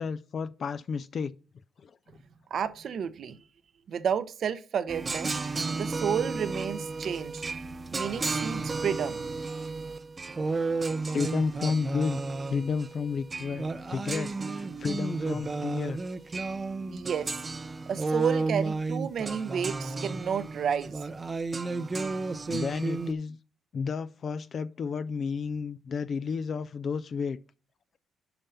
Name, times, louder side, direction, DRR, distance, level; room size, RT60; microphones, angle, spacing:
voice 1, 0.0-1.3 1.8-2.0 11.0-12.2 12.5-16.0 22.5-23.4 23.7-27.4, left 5 dB, 50° left, 0.4 m, -32 dB
voice 2, 2.5-3.4 3.9-5.4 5.7-7.5 7.9-9.2 16.9-17.3 17.9-21.0, right 7 dB, 60° right, 0.8 m, -31 dB
sound 1, 4.9-23.1, right 3 dB, 30° right, 0.6 m, -33 dB
6.9 x 5.4 x 5.6 m
cardioid pair, 90°, 0 cm